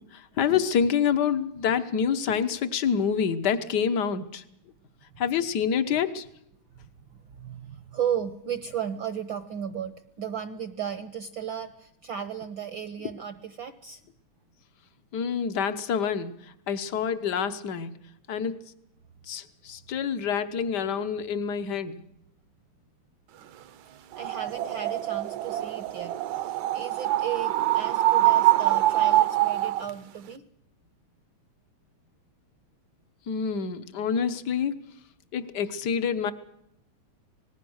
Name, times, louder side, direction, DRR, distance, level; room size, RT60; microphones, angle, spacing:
voice 1, 0.1-4.4 5.2-6.3 15.1-16.3 16.7-17.9 18.3-18.6 19.3-22.0 33.3-34.7 35.3-36.3, left 7 dB, 60° left, 11 dB, 1.1 m, -27 dB
voice 2, 7.1-14.0 23.9-30.4, right 9 dB, 60° right, 11 dB, 1.4 m, -35 dB
sound 1, 24.1-29.9, right 15 dB, 75° right, 2.3 m, -24 dB
26.0 x 19.5 x 6.4 m, 0.75 s
omnidirectional pair, 3.4 m